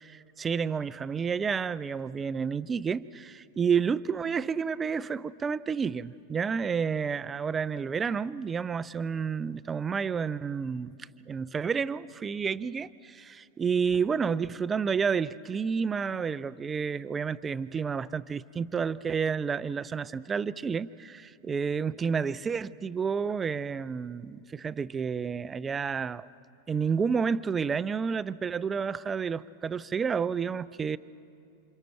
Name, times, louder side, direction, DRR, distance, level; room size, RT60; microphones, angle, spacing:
voice 1, 0.4-10.9 11.3-26.3 26.7-31.0, right 6 dB, 20° right, 0.4 m, -30 dB
28.5 x 27.0 x 4.5 m
figure-of-eight pair, 90°, 0 cm